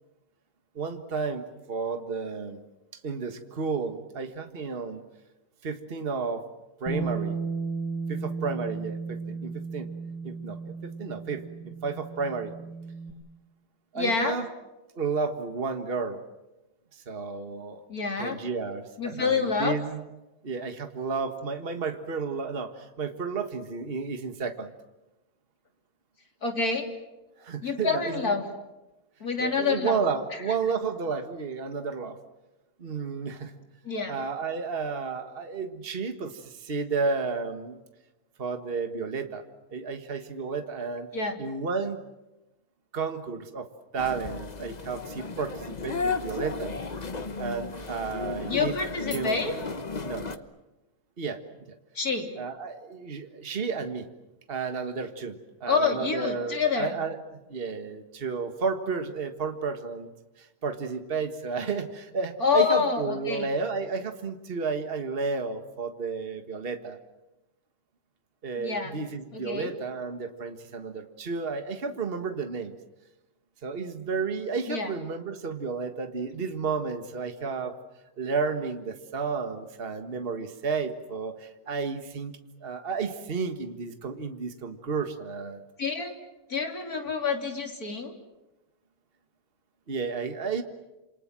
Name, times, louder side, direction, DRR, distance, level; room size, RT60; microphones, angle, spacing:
voice 1, 0.8-2.6 2.9-5.0 5.6-6.5 6.8-7.4 8.1-9.9 10.2-12.5 13.9-14.5 15.0-16.2 16.9-17.8 18.2-20.0 20.4-24.7 27.4-28.4 29.4-32.2 32.8-33.5 34.1-37.8 38.4-39.4 39.7-41.1 41.4-42.0 42.9-43.7 43.9-46.8 47.4-48.7 49.1-49.4 50.0-50.5 51.2-51.4 52.4-54.1 54.5-60.1 60.4-67.0 68.4-72.8 73.6-77.8 78.2-85.6 89.9-90.6, right 5 dB, 35° right, 7 dB, 1.8 m, -32 dB
Bass guitar, 6.9-13.1, right 4 dB, 80° right, 8.6 m, -34 dB
voice 2, 14.0-14.4 17.9-18.4 19.0-19.8 26.4-26.9 27.6-28.4 29.2-30.0 33.8-34.1 41.1-41.4 48.5-49.6 52.0-52.3 55.7-57.0 62.4-63.5 68.6-69.0 69.3-69.7 74.7-74.9 85.8-86.1 86.5-88.1, left 5 dB, 65° left, 4 dB, 3.8 m, -27 dB
sound 1, 44.0-50.4, left 4 dB, 30° left, 1.1 m, -34 dB
28.0 x 27.5 x 7.6 m, 1.0 s
omnidirectional pair, 1.7 m